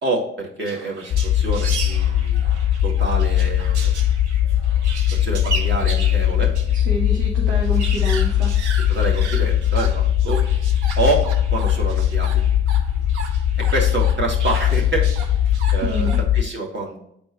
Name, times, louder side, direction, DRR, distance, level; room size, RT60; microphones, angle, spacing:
voice 1, 0.0-2.4 2.8-3.9 5.0-6.5 8.9-10.4 11.0-12.4 13.6-15.1 15.4-16.1 16.3-17.0, right 2 dB, 35° right, -2 dB, 2.2 m, -27 dB
sound 1, 0.7-6.8 7.1-7.2 7.5-16.2, right 4 dB, 85° right, 0.6 m, -35 dB
sound 2, 1.1-16.4, left 11 dB, 55° left, 0.4 m, -20 dB
voice 2, 6.7-8.5 15.8-16.2, right 2 dB, 70° right, -1 dB, 1.2 m, -28 dB
8.2 x 4.3 x 2.9 m, 0.74 s
figure-of-eight pair, 45°, 33 cm